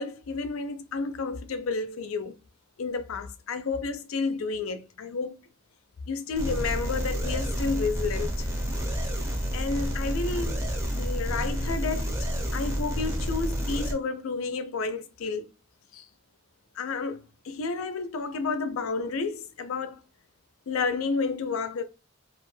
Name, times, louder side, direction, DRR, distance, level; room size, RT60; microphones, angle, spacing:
voice 1, 0.0-2.4 2.8-5.4 6.1-8.5 9.5-10.6 11.0-15.5 15.9-16.1 16.8-20.0 20.7-21.8, left 4 dB, 85° left, 0.4 m, -31 dB
sound 1, 6.4-13.9, equal, 15° right, 0.5 m, -29 dB
2.4 x 2.1 x 3.0 m
head